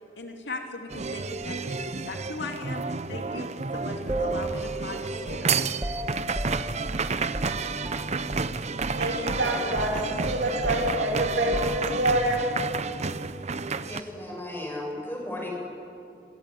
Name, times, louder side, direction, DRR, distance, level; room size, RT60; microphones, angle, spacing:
voice 1, 0.2-1.8 2.0-2.8 3.1-5.5, left 3 dB, 70° left, 2 dB, 3.3 m, -38 dB
sound 1, 0.9-14.0, right 4 dB, 40° right, 0.8 m, -31 dB
sound 2, 4.1-8.5 8.8-9.0 9.3-12.3, right 1 dB, 15° right, 2.1 m, -35 dB
voice 2, 8.9-12.4, right 1 dB, 75° right, 0 dB, 6.4 m, -26 dB
voice 3, 13.8-15.5, left 1 dB, 15° left, -1 dB, 7.8 m, -35 dB
28.0 x 23.0 x 8.8 m, 2.6 s
head